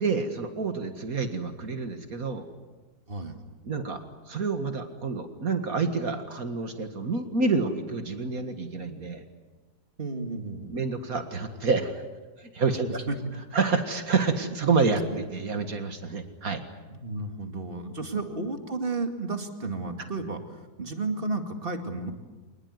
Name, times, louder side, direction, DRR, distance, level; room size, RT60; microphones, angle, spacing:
voice 1, 0.0-2.5 3.6-9.2 10.7-12.0 12.4-13.0 13.5-16.6, right 4 dB, 60° right, 7 dB, 2.2 m, -28 dB
voice 2, 3.1-3.4 10.0-10.8 12.9-13.2 15.1-15.3 16.9-22.1, right 3 dB, 35° right, 5 dB, 2.4 m, -33 dB
26.0 x 20.5 x 9.6 m, 1.3 s
omnidirectional pair, 1.7 m